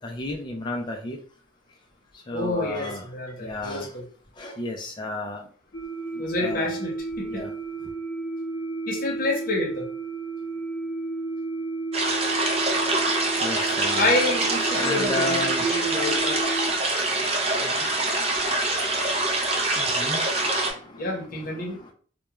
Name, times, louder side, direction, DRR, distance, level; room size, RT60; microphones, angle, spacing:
voice 1, 0.0-1.2 2.1-3.0 3.4-4.0 4.4-5.5 6.1-6.8 7.3-7.5 12.7-14.2 14.7-21.9, left 2 dB, 25° left, 2 dB, 0.3 m, -35 dB
voice 2, 2.3-4.0 6.2-7.4 8.9-9.8 13.9-16.4 17.6-17.9 21.0-21.8, left 2 dB, 45° left, -1 dB, 0.8 m, -28 dB
sound 1, 5.7-16.7, right 3 dB, 80° left, 0.6 m, -32 dB
sound 2, 11.9-20.7, right 2 dB, 30° right, 0.5 m, -25 dB
2.2 x 2.2 x 2.9 m, 0.42 s
head